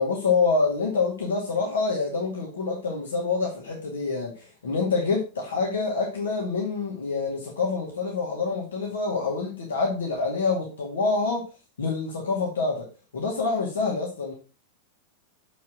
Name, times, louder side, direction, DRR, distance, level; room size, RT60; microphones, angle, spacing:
voice 1, 0.0-11.4 11.8-12.9 13.1-14.3, left 4 dB, 65° left, 2.1 m, -26 dB
7.0 x 4.7 x 6.0 m
figure-of-eight pair, 90°, 0 cm